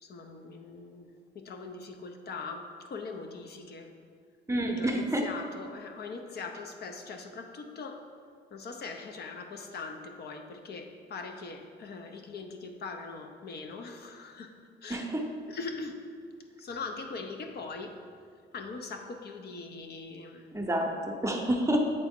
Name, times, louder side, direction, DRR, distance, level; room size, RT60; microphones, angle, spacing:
voice 1, 0.0-3.9 4.7-8.1 8.5-15.1 15.5-16.0 16.6-17.9 18.5-20.6, left 4 dB, 55° left, 4 dB, 0.6 m, -41 dB
voice 2, 4.5-5.2 14.9-15.2 20.5-21.9, right 1 dB, 15° right, 2 dB, 0.7 m, -28 dB
8.0 x 3.6 x 3.6 m, 2.1 s
cardioid pair, 90°, 20 cm